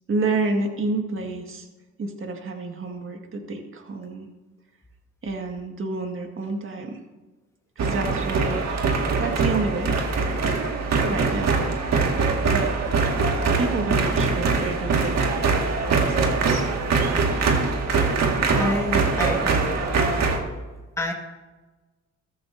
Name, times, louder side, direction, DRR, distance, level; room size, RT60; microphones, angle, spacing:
voice 1, 0.1-1.7 2.0-4.3 5.2-7.0 7.8-8.7 9.0-10.0 11.1-11.7 12.5-12.7 13.6-15.2 15.9-16.7, right 3 dB, 45° right, 4 dB, 1.9 m, -29 dB
sound 1, 7.8-20.4, right 4 dB, 60° right, 1.9 m, -23 dB
voice 2, 18.5-20.2 21.0-21.1, left 2 dB, 10° left, 1 dB, 1.8 m, -29 dB
14.0 x 14.0 x 2.7 m, 1.2 s
cardioid pair, 90°, 30 cm